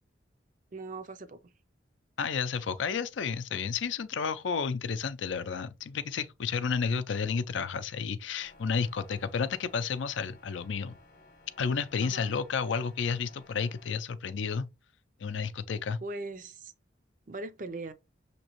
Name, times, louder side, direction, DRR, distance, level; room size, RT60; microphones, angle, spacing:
voice 1, 0.7-1.5 12.0-12.4 16.0-16.7 17.3-17.9, right 2 dB, 45° right, 0.5 m, -40 dB
voice 2, 2.2-11.0 11.6-14.7 15.2-16.0, left 6 dB, 80° left, 0.4 m, -31 dB
sound 1, 8.4-13.9, left 2 dB, 45° left, 0.8 m, -58 dB
6.2 x 2.9 x 2.9 m
head